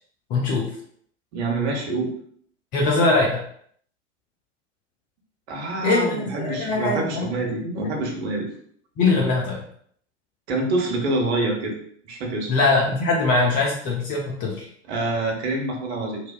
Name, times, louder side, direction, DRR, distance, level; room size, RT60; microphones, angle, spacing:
voice 1, 0.3-0.6 2.7-3.4 5.8-6.2 6.5-7.3 7.6-7.9 9.0-9.6 12.5-14.7, left 3 dB, 25° left, -2 dB, 0.3 m, -21 dB
voice 2, 1.3-2.2 5.5-8.5 10.5-11.7 12.0-12.5 14.9-16.2, right 2 dB, 60° right, 0 dB, 0.8 m, -26 dB
2.7 x 2.1 x 2.3 m, 0.62 s
figure-of-eight pair, 85°, 38 cm